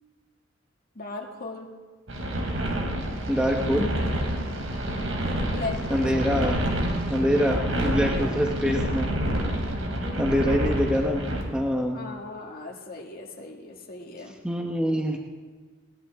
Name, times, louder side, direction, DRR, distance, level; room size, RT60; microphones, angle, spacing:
voice 1, 1.0-1.7 5.4-6.3 8.6-8.7 9.9-10.7 11.9-14.3, left 3 dB, 45° left, 0 dB, 2.3 m, -38 dB
sound 1, 2.1-11.4, equal, 85° right, 3.5 m, -28 dB
voice 2, 3.3-3.9 5.9-6.6 7.1-9.2 10.2-11.2 11.5-12.0 14.4-15.2, equal, 5° right, 1 dB, 1.1 m, -25 dB
20.0 x 20.0 x 3.7 m, 1.4 s
head